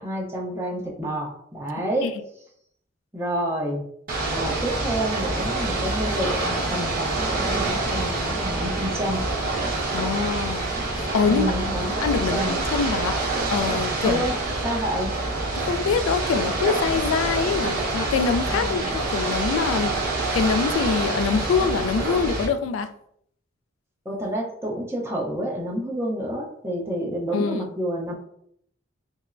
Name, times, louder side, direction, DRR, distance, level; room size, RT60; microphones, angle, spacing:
voice 1, 0.0-2.1 3.1-3.8 4.3-9.2 11.2-12.6 14.0-14.3 14.6-15.1 18.5-19.0 24.0-28.1, equal, 15° right, 0.7 m, -29 dB
Ocean / Boat Water vehicle, 4.1-22.5, right 2 dB, 50° right, 1.0 m, -26 dB
voice 2, 9.9-11.5 12.0-13.2 13.5-14.2 15.5-19.9 20.3-22.9 27.3-27.7, left 5 dB, 90° left, 0.3 m, -24 dB
5.2 x 2.1 x 2.5 m
head